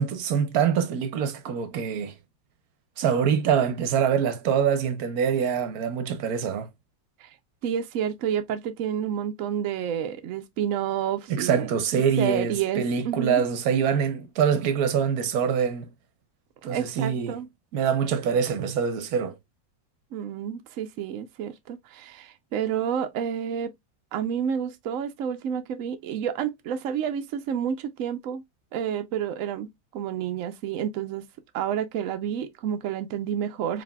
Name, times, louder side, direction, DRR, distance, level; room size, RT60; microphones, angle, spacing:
voice 1, 0.0-2.1 3.0-6.7 11.3-15.9 16.6-17.3 17.7-19.4, right 7 dB, 65° right, 1.0 m, -24 dB
voice 2, 7.6-11.7 12.2-13.4 16.7-17.5 20.1-23.7 24.1-28.4 28.7-31.2 31.5-33.8, right 9 dB, 90° right, 0.7 m, -29 dB
4.9 x 3.3 x 2.2 m
omnidirectional pair, 2.1 m